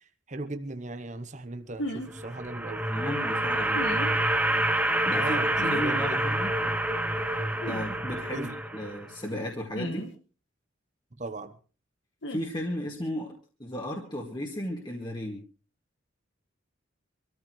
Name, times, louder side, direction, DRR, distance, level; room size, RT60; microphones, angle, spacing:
voice 1, 0.3-2.9 5.1-6.2 6.6-6.8 8.3-8.5 11.2-11.5, right 2 dB, 40° right, 1.0 m, -37 dB
sound 1, 1.8-2.1 3.7-4.1 5.6-5.8 7.6-7.8 9.7-10.1 12.2-12.4, left 1 dB, 70° left, 2.1 m, -34 dB
sound 2, 2.0-9.2, right 1 dB, 10° right, 1.1 m, -28 dB
voice 2, 2.9-3.8 5.0-5.4 5.7-6.5 7.7-10.1 12.3-13.3 13.6-15.4, left 1 dB, 25° left, 2.1 m, -34 dB
25.5 x 14.0 x 3.2 m
head